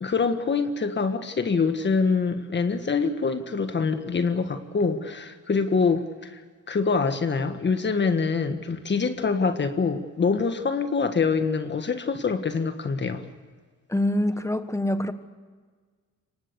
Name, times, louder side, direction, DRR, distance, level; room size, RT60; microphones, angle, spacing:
voice 1, 0.0-6.4 6.7-13.2, left 5 dB, 35° left, 8 dB, 1.6 m, -25 dB
voice 2, 13.9-15.1, left 1 dB, 10° left, 10 dB, 1.4 m, -25 dB
24.5 x 19.0 x 8.2 m, 1.5 s
cardioid pair, 90°, 30 cm